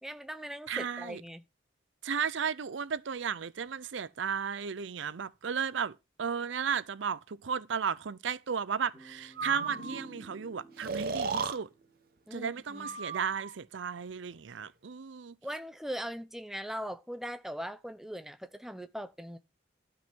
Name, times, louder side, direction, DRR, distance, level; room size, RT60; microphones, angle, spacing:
voice 1, 0.0-1.4 12.3-13.0 15.4-19.4, equal, ahead, 0.7 m, -40 dB
voice 2, 0.7-1.2 2.0-11.7 12.3-15.4, right 6 dB, 80° right, 0.6 m, -34 dB
sound 1, 8.9-12.6, right 2 dB, 15° left, 6.7 m, -51 dB
Breathing, 9.4-10.0 10.8-11.6 12.7-13.6, right 4 dB, 55° right, 1.0 m, -35 dB
12.5 x 5.5 x 4.5 m
head